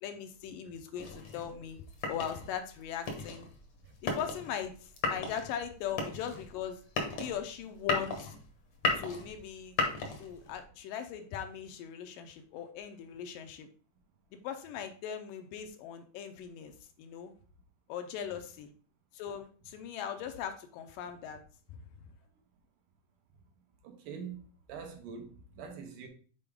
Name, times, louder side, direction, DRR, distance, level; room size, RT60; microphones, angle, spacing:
voice 1, 0.0-1.8 2.1-3.5 4.0-6.8 7.2-8.3 8.9-9.8 10.2-13.7 14.3-17.3 17.9-18.7 19.1-21.4, left 9 dB, 80° left, 2.2 m, -39 dB
sound 1, 0.9-10.6, left 3 dB, 60° left, 1.5 m, -36 dB
voice 2, 23.8-24.4 24.7-26.1, right 6 dB, 70° right, 2.3 m, -44 dB
6.9 x 4.5 x 3.5 m
omnidirectional pair, 4.0 m